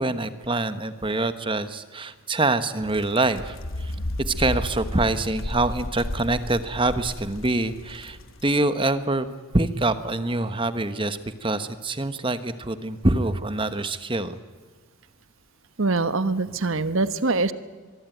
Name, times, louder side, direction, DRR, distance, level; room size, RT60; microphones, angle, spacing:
voice 1, 0.0-3.9 4.2-9.3 9.5-14.4, right 2 dB, 20° right, 12 dB, 1.1 m, -25 dB
sound 1, 2.8-8.5, left 1 dB, 65° left, 1.3 m, -33 dB
voice 2, 15.8-17.5, right 3 dB, 65° right, 13 dB, 1.2 m, -23 dB
23.5 x 23.0 x 9.2 m, 1.4 s
head